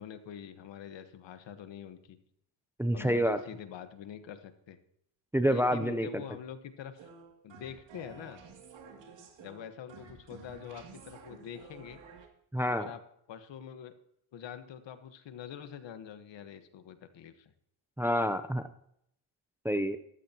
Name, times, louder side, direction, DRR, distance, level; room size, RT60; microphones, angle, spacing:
voice 1, 0.0-2.2 2.9-4.8 5.5-7.1 7.4-8.4 9.4-12.0 12.8-13.0 13.3-13.9 14.3-17.5, left 9 dB, 60° left, 10 dB, 1.4 m, -45 dB
voice 2, 2.8-3.4 5.3-6.2 12.5-12.9 18.0-18.7 19.6-20.0, equal, 5° right, 10 dB, 0.6 m, -28 dB
sound 1, 7.0-12.3, right 5 dB, 65° right, 2.8 m, -52 dB
14.0 x 13.0 x 2.9 m, 0.72 s
cardioid pair, 105°, 48 cm